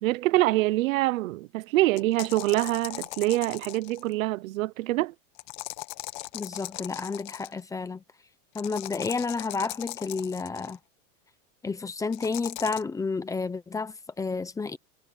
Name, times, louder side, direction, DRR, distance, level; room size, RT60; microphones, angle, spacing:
voice 1, 0.0-5.1, right 18 dB, 80° right, 0.9 m, -25 dB
sound 1, 2.0-4.1 5.4-7.6 8.5-10.7 12.1-12.8, left 22 dB, 45° left, 1.2 m, -39 dB
voice 2, 6.3-8.0 8.5-10.8 11.6-14.8, left 4 dB, 10° left, 0.8 m, -31 dB
supercardioid pair, 160°, 39 cm